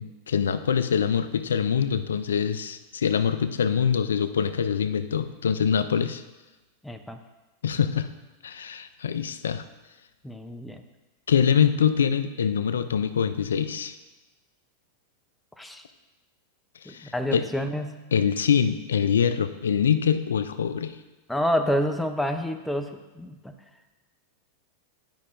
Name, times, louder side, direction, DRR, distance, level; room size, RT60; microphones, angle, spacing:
voice 1, 0.0-6.2 7.6-8.1 8.4-9.6 11.3-14.0 16.8-17.4 18.1-21.0, left 7 dB, 85° left, 11 dB, 0.4 m, -24 dB
voice 2, 6.8-7.2 10.2-10.8 15.6-15.8 16.9-18.1 21.3-23.6, equal, 5° left, 6 dB, 0.6 m, -28 dB
10.5 x 5.4 x 2.6 m, 1.1 s
hypercardioid pair, 100°, 0 cm